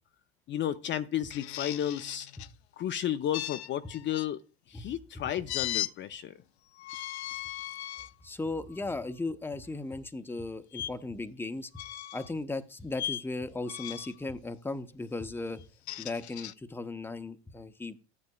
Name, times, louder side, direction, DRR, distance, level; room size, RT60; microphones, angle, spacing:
voice 1, 0.5-2.3 2.8-4.4 4.7-6.3, left 11 dB, 35° left, 0.6 m, -32 dB
sound 1, 1.3-2.5 3.3-4.3 5.5-5.9 6.8-8.1 8.7-8.9 10.7-10.9 11.7-12.3 12.9-13.3 13.7-14.2 15.6-16.5, left 13 dB, 85° left, 0.5 m, -37 dB
voice 2, 8.2-11.7 12.1-15.6 16.0-18.0, left 2 dB, 5° left, 0.8 m, -36 dB
13.5 x 9.6 x 2.3 m
hypercardioid pair, 85°, 32 cm